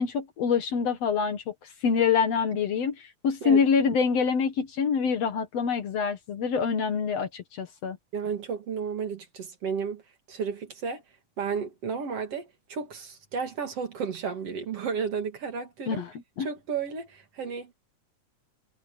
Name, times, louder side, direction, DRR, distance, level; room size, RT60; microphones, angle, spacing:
voice 1, 0.0-1.5 1.8-8.0 15.9-16.1 16.4-16.5, left 6 dB, 60° left, 2.4 m, -25 dB
voice 2, 8.1-10.0 10.3-11.0 11.4-16.0 16.4-17.7, right 6 dB, 50° right, 2.9 m, -32 dB
omnidirectional pair, 3.6 m